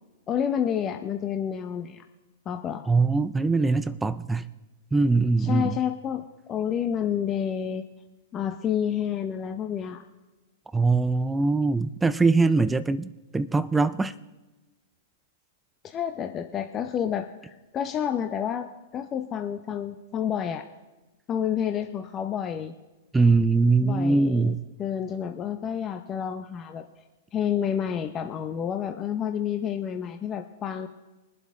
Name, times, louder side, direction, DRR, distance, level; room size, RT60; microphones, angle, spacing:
voice 1, 0.3-2.0 2.5-2.8 5.4-7.8 8.3-10.0 15.8-18.7 18.9-20.7 21.3-22.7 23.8-26.9 27.3-30.9, left 8 dB, 25° left, 0.7 m, -29 dB
voice 2, 2.9-4.5 4.9-5.7 10.7-14.1 23.1-24.6, right 3 dB, 10° right, 0.4 m, -22 dB
22.0 x 7.9 x 3.6 m
hypercardioid pair, 130°, 0 cm